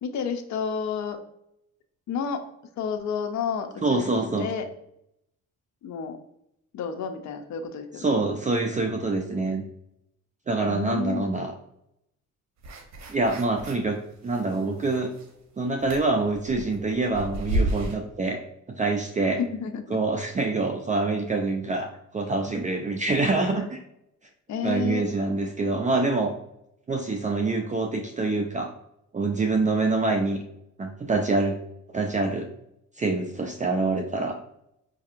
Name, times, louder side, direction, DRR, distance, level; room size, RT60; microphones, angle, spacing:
voice 1, 0.0-1.2 2.1-2.4 2.8-4.7 5.8-6.2 6.7-8.2 10.6-11.4 19.4-20.0 24.5-25.0, left 6 dB, 70° left, 6 dB, 0.6 m, -30 dB
voice 2, 3.8-4.5 8.0-9.6 10.5-11.5 13.1-14.0 14.2-15.1 15.6-18.4 18.7-19.4 19.9-23.8 24.6-26.3 26.9-28.7 29.1-30.4 30.8-31.6 31.9-32.5 33.0-34.4, right 3 dB, 25° right, 4 dB, 0.5 m, -25 dB
sound 1, 12.6-13.9 14.3-15.4 15.8-18.0, right 1 dB, 65° right, 1.0 m, -31 dB
5.2 x 2.7 x 2.5 m, 0.79 s
cardioid pair, 90°, 30 cm